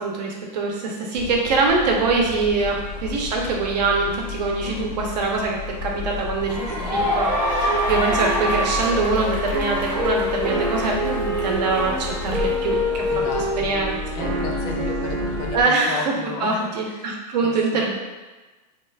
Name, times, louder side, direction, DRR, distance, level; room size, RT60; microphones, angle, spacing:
voice 1, 0.0-6.6 6.9-13.1 13.3-14.0 15.5-16.1 16.4-18.0, right 3 dB, 80° right, 0 dB, 0.6 m, -23 dB
sound 1, 1.1-15.6, left 6 dB, 75° left, 0.7 m, -33 dB
voice 2, 4.6-5.0 6.5-7.0 13.1-13.9 14.1-17.1 17.4-17.5, left 3 dB, 45° left, 1 dB, 0.5 m, -34 dB
sound 2, 6.5-13.5, equal, 5° right, 0.5 m, -28 dB
sound 3, 6.9-15.5, equal, 45° right, 0.8 m, -27 dB
2.3 x 2.1 x 3.2 m, 1.2 s
supercardioid pair, 130°, 21 cm